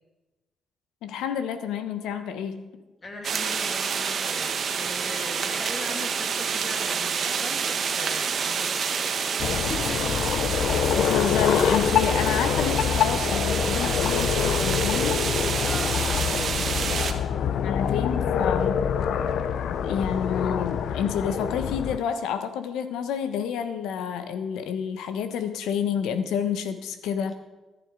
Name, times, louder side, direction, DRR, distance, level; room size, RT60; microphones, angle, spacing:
voice 1, 1.0-2.7 10.9-15.2 17.6-18.9 19.8-27.3, left 8 dB, 90° left, 10 dB, 1.1 m, -29 dB
voice 2, 3.0-10.2 15.6-17.1, left 2 dB, 30° left, 3 dB, 2.7 m, -40 dB
sound 1, 3.2-17.1, right 6 dB, 55° right, 1.2 m, -28 dB
sound 2, 9.4-22.0, left 7 dB, 70° left, 0.6 m, -25 dB
14.0 x 11.0 x 4.8 m, 1.2 s
cardioid pair, 90°, 0 cm